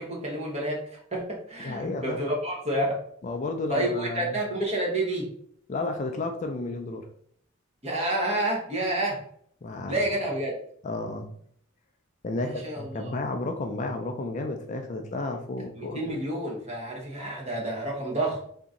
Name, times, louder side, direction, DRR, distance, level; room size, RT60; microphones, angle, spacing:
voice 1, 0.0-3.0 3.7-5.3 7.8-9.2 9.9-10.5 12.4-13.1 15.7-18.4, right 1 dB, 30° right, -2 dB, 1.0 m, -29 dB
voice 2, 1.6-2.2 3.2-4.4 5.7-7.1 9.6-10.0 10.8-11.3 12.2-16.2, left 2 dB, 35° left, 4 dB, 0.3 m, -32 dB
2.8 x 2.7 x 3.6 m, 0.64 s
head